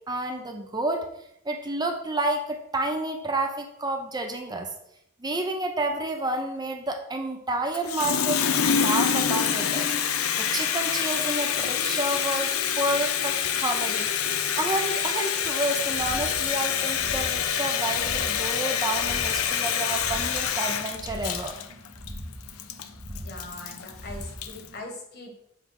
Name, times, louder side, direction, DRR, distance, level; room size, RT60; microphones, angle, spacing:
voice 1, 0.1-1.0 1.4-4.7 5.2-14.1 14.5-21.5, right 2 dB, 20° right, 4 dB, 0.7 m, -30 dB
Water tap faucet, 7.7-24.7, left 8 dB, 75° left, 0.6 m, -26 dB
sound 1, 15.7-24.8, equal, 55° right, 1.7 m, -41 dB
voice 2, 23.1-25.3, left 1 dB, 50° left, 2 dB, 1.6 m, -41 dB
7.3 x 3.5 x 5.8 m, 0.76 s
head